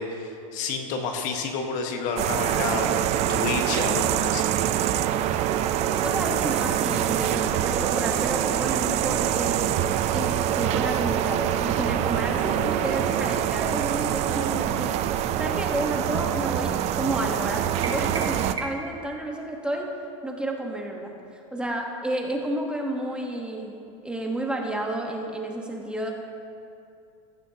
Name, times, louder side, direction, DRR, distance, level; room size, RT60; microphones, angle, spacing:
voice 1, 0.0-4.5, left 5 dB, 50° left, 3 dB, 1.5 m, -30 dB
sound 1, 2.2-18.5, right 11 dB, 40° right, 0.6 m, -25 dB
voice 2, 5.9-14.9 15.4-19.9 20.2-23.7 24.0-26.1, right 1 dB, 5° right, 0 dB, 1.3 m, -31 dB
sound 2, 17.8-19.0, right 3 dB, 25° right, 1.4 m, -35 dB
15.5 x 14.5 x 2.9 m, 2.5 s
supercardioid pair, 130°, 17 cm